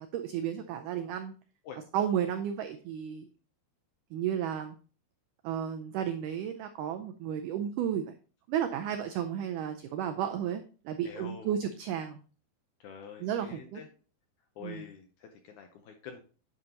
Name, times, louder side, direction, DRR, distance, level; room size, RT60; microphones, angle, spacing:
voice 1, 0.0-1.3 1.9-3.3 4.1-4.8 5.4-8.1 8.5-12.2 13.2-13.8 14.6-14.8, right 9 dB, 90° right, 7 dB, 1.8 m, -33 dB
voice 2, 11.0-11.6 12.8-13.9 14.6-16.2, left 7 dB, 75° left, 4 dB, 1.8 m, -46 dB
9.7 x 5.3 x 2.9 m, 0.39 s
omnidirectional pair, 4.3 m